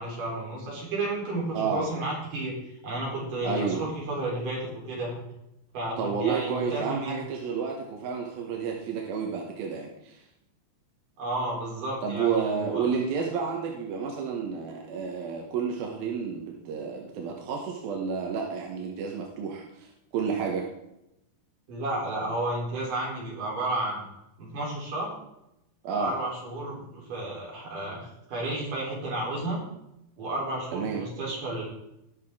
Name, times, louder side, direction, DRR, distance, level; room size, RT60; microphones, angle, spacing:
voice 1, 0.0-5.2 5.7-7.2 11.2-12.9 21.7-24.0 24.4-25.2 25.9-29.6 30.2-31.6, right 2 dB, 50° right, -4 dB, 5.1 m, -32 dB
voice 2, 1.5-1.8 3.4-3.8 6.0-10.2 12.0-20.7 25.8-26.1 30.7-31.0, right 6 dB, 70° right, 0 dB, 2.8 m, -30 dB
19.5 x 6.6 x 3.7 m, 0.84 s
omnidirectional pair, 4.9 m